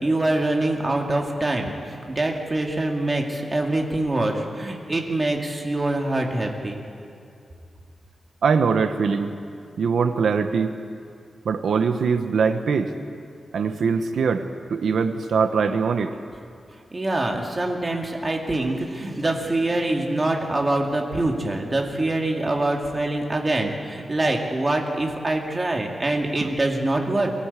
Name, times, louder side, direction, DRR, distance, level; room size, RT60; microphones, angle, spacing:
voice 1, 0.0-6.8 16.9-27.3, right 2 dB, 20° right, 1 dB, 2.2 m, -24 dB
voice 2, 8.4-9.3 9.8-10.7 11.4-12.9 13.5-14.4 14.7-16.2 26.4-26.5, right 5 dB, 80° right, 8 dB, 1.1 m, -22 dB
23.0 x 18.0 x 8.3 m, 2.4 s
wide cardioid pair, 160°, 0 cm